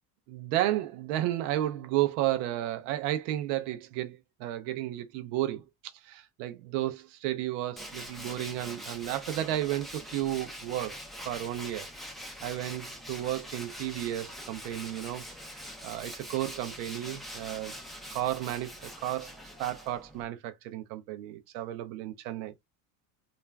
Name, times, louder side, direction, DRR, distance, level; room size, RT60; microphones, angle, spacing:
voice 1, 0.3-5.6 6.0-11.0 11.2-11.9 12.4-17.7 18.1-22.6, right 14 dB, 85° right, 0.6 m, -33 dB
Tools, 7.8-20.3, equal, ahead, 0.5 m, -44 dB
2.4 x 2.2 x 3.2 m
cardioid pair, 120°, 39 cm